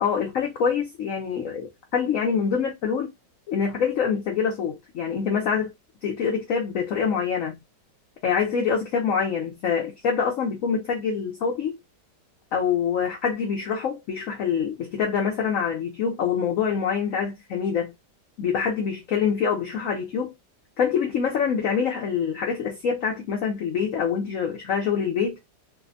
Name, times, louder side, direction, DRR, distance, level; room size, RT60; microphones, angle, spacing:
voice 1, 0.0-3.1 3.5-5.7 6.0-7.6 8.2-11.8 12.5-17.9 18.4-20.3 20.8-25.4, left 6 dB, 65° left, 0.9 m, -25 dB
3.3 x 2.1 x 2.4 m
omnidirectional pair, 1.9 m